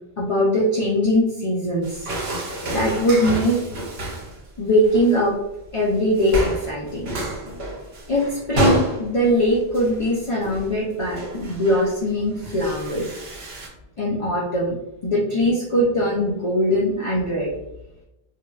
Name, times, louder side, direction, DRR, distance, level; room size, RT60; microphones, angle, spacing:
voice 1, 0.2-2.0 2.7-3.6 4.6-5.4 5.7-7.2 8.1-13.1 14.0-14.7 15.0-17.5, equal, 50° left, -4 dB, 0.4 m, -21 dB
sound 1, 1.8-4.4 4.7-5.2 5.6-5.9 6.2-13.7, right 1 dB, 75° right, 0.9 m, -29 dB
3.0 x 2.1 x 2.2 m, 0.92 s
omnidirectional pair, 1.0 m